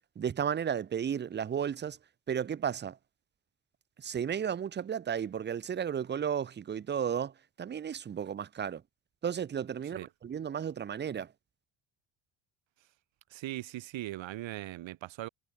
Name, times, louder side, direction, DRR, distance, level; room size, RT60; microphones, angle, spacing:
voice 1, 0.2-2.0 2.3-3.0 4.0-8.8 9.2-11.3, right 8 dB, 25° right, 0.4 m, -33 dB
voice 2, 13.3-15.3, right 15 dB, 85° right, 1.6 m, -39 dB
cardioid pair, 150°, 45 cm